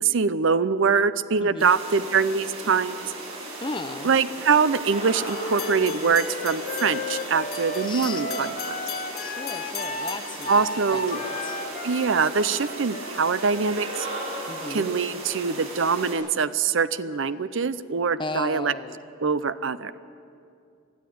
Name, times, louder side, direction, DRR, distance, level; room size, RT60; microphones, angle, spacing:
voice 1, 0.0-3.1 4.0-8.7 10.5-11.2 11.8-14.1 14.7-18.7 19.2-20.0, right 5 dB, 60° right, 14 dB, 0.6 m, -24 dB
voice 2, 1.4-1.7 3.6-4.2 7.8-8.6 9.2-11.6 14.5-14.9 18.2-19.0, left 2 dB, 20° left, 8 dB, 0.8 m, -36 dB
sound 1, 1.6-16.2, right 1 dB, 85° right, 7.0 m, -36 dB
sound 2, 5.3-11.5, left 12 dB, 80° left, 1.1 m, -40 dB
Wind instrument woodwind instrument, 5.4-15.2, left 2 dB, 40° left, 1.1 m, -35 dB
22.0 x 12.5 x 9.3 m, 2.5 s
head